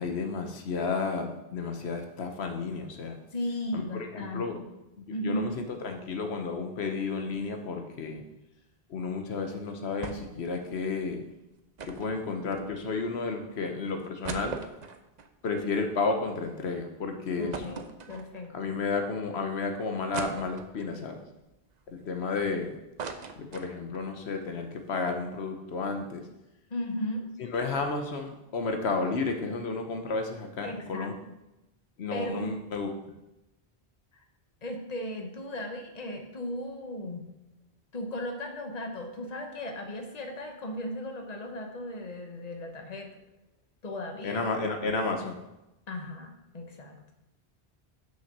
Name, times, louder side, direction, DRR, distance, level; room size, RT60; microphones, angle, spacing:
voice 1, 0.0-3.2 3.7-3.8 4.1-4.5 5.2-8.2 8.9-11.2 11.9-14.6 15.4-17.8 18.5-21.2 21.9-22.7 23.4-26.2 27.5-31.1 32.0-32.9 44.2-45.4, left 4 dB, 85° left, 4 dB, 1.2 m, -32 dB
voice 2, 3.3-4.6 5.1-5.5 17.4-18.8 26.7-27.3 30.6-31.1 32.1-32.5 34.1-34.2 34.6-37.3 37.9-43.1 43.8-44.4 44.8-44.9 45.9-47.0, left 1 dB, 40° left, 3 dB, 1.2 m, -36 dB
sound 1, 10.0-10.4 10.7-10.8 11.8-13.0 13.6-13.7 14.0-16.4 16.8-16.9 17.5-18.7 19.2-19.3 20.1-21.0 21.5-22.5 22.8-24.1 24.4-24.5 24.8-25.0, right 5 dB, 50° right, 0.7 m, -40 dB
6.2 x 5.7 x 6.6 m, 0.93 s
omnidirectional pair, 1.1 m